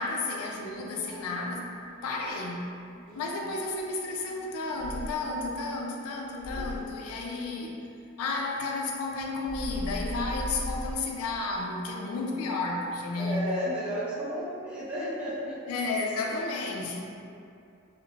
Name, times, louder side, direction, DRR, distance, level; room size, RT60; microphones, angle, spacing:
voice 1, 0.0-1.7 2.0-2.7 3.2-7.7 8.2-13.5 15.7-17.0, left 3 dB, 85° left, -1 dB, 0.4 m, -32 dB
Sneeze, 0.5-10.5, equal, 30° right, 1.3 m, -55 dB
voice 2, 3.1-3.5 11.9-12.4 13.2-15.6 16.3-16.4, equal, 5° right, -12 dB, 0.6 m, -34 dB
sound 1, 3.8-3.9 4.8-5.5 6.4-7.0 9.4-11.0, equal, 30° left, 1.2 m, -36 dB
2.7 x 2.1 x 2.7 m, 2.6 s
head